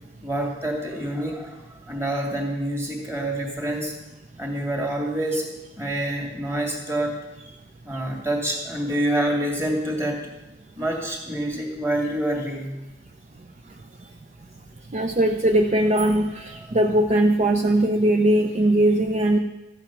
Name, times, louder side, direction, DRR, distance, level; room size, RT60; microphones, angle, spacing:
voice 1, 0.2-3.9 4.4-5.5 5.8-7.2 7.8-10.3 10.8-12.7 16.6-16.7, right 1 dB, 15° right, 0 dB, 2.6 m, -27 dB
voice 2, 14.9-19.4, right 1 dB, 40° right, 6 dB, 0.5 m, -20 dB
13.5 x 8.9 x 5.9 m, 1.0 s
head